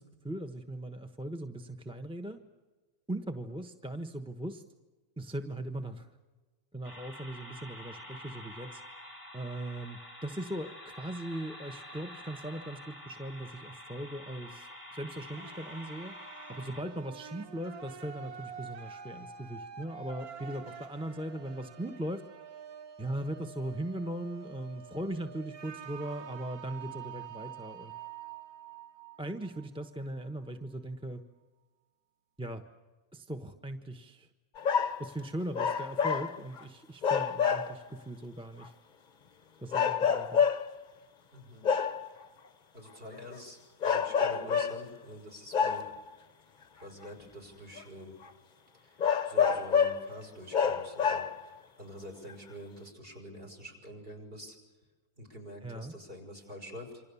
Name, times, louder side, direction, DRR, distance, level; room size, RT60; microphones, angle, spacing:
voice 1, 0.0-2.4 3.1-4.6 5.2-6.1 6.7-8.8 9.3-16.1 16.5-22.2 23.0-27.9 29.2-31.2 32.4-32.6 33.1-34.3 35.0-38.7 39.6-40.4 55.6-55.9, right 1 dB, 5° right, 6 dB, 1.0 m, -39 dB
sound 1, 6.8-16.8, left 1 dB, 20° right, 7.7 m, -48 dB
sound 2, 15.3-30.3, right 8 dB, 75° right, 1.8 m, -47 dB
sound 3, 34.6-35.1 35.5-36.6 37.0-37.9 38.6-38.7 39.7-40.8 41.6-42.1 43.1-43.4 43.8-44.9 45.5-46.1 47.0-47.1 47.8-47.9 48.2-48.3 49.0-50.1 50.5-51.5 52.3-52.4, left 7 dB, 40° left, 0.8 m, -28 dB
voice 2, 41.3-41.7 42.7-45.9 46.8-48.2 48.8-49.0 49.2-54.6 55.2-57.0, equal, 35° right, 4 dB, 6.2 m, -46 dB
28.0 x 25.5 x 7.1 m, 1.3 s
omnidirectional pair, 1.6 m